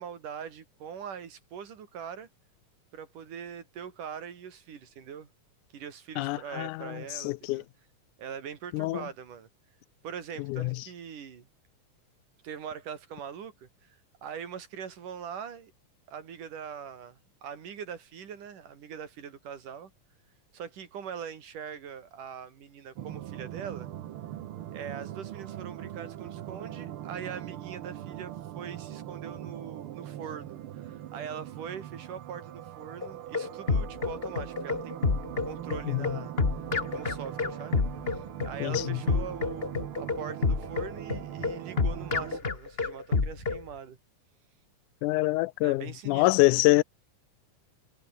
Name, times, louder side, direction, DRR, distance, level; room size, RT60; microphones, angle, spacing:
voice 1, 0.0-2.3 2.9-5.3 5.7-7.7 8.2-9.5 10.0-11.5 12.4-15.7 16.1-19.9 20.5-23.9 24.7-35.1 35.4-36.3 36.9-37.8 38.1-44.0 45.6-46.6, right 7 dB, 85° right, 4.4 m, -42 dB
voice 2, 6.2-6.9 7.2-7.6 8.7-9.0 10.5-10.7 35.9-36.1 38.6-39.0 45.0-46.8, left 20 dB, 85° left, 2.0 m, -25 dB
sound 1, 23.0-42.4, right 12 dB, 65° right, 1.4 m, -41 dB
sound 2, 33.0-43.6, left 4 dB, 25° left, 1.3 m, -29 dB
omnidirectional pair, 3.6 m